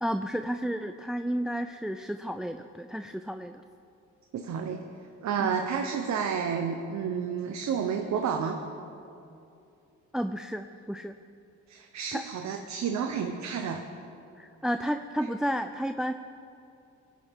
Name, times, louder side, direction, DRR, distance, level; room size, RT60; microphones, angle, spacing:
voice 1, 0.0-3.6 5.4-5.6 10.1-11.2 12.1-12.2 14.4-16.1, equal, ahead, 8 dB, 0.3 m, -32 dB
voice 2, 4.3-4.8 5.2-8.6 11.7-13.8, right 7 dB, 65° right, 4 dB, 1.0 m, -30 dB
20.0 x 11.0 x 3.6 m, 2.6 s
cardioid pair, 90°, 30 cm